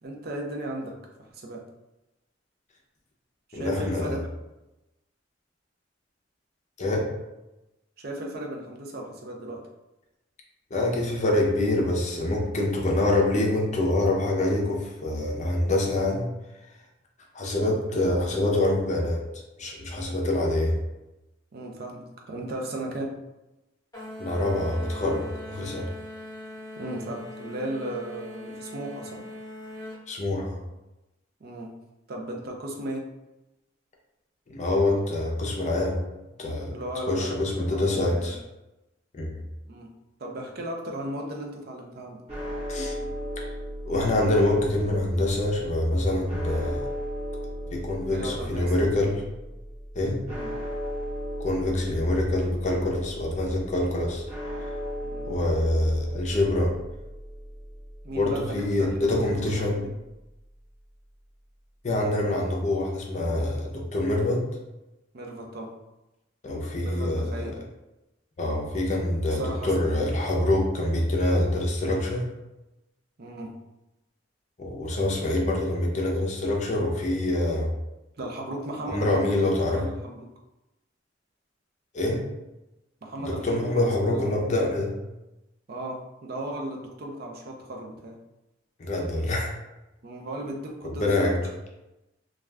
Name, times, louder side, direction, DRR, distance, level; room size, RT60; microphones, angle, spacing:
voice 1, 0.0-1.6 3.5-4.3 8.0-9.6 21.5-23.2 26.8-29.3 31.4-31.7 32.1-33.1 36.7-38.4 39.7-39.9 40.2-42.2 48.0-48.9 50.3-50.5 55.0-55.3 58.0-59.9 65.1-65.7 66.8-67.6 69.3-69.7 73.2-73.5 78.2-80.3 83.0-84.5 85.7-88.2 90.0-91.3, right 1 dB, 55° right, 1 dB, 0.5 m, -36 dB
voice 2, 3.5-4.2 6.8-7.1 10.7-16.3 17.3-20.8 24.2-25.9 30.1-30.6 34.5-36.0 36.4-36.8 37.1-38.4 39.1-39.4 42.7-43.1 43.4-43.5 43.9-46.9 47.7-49.2 49.9-50.2 51.4-54.2 55.3-56.8 58.1-59.8 61.8-64.5 66.4-67.4 68.4-72.3 74.6-77.7 78.9-79.9 81.9-82.3 83.2-85.0 88.8-89.5 90.8-91.4, left 1 dB, 40° left, -1 dB, 0.5 m, -25 dB
sound 1, 23.9-30.0, left 1 dB, 20° left, 1.0 m, -41 dB
sound 2, 42.3-60.5, equal, 35° right, 1.0 m, -37 dB
2.4 x 2.3 x 3.2 m, 0.98 s
head